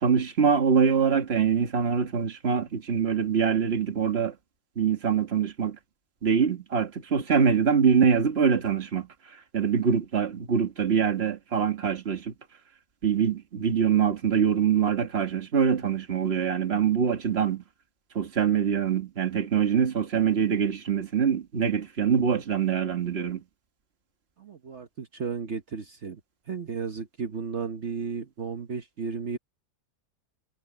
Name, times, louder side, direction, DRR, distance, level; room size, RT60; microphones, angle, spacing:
voice 1, 0.0-4.4 4.8-5.8 6.2-9.1 9.5-12.3 13.0-17.6 18.2-23.4, right 7 dB, 30° right, 1.9 m, -24 dB
voice 2, 24.4-26.2 26.5-29.4, right 5 dB, 50° right, 0.9 m, -34 dB
omnidirectional pair, 2.2 m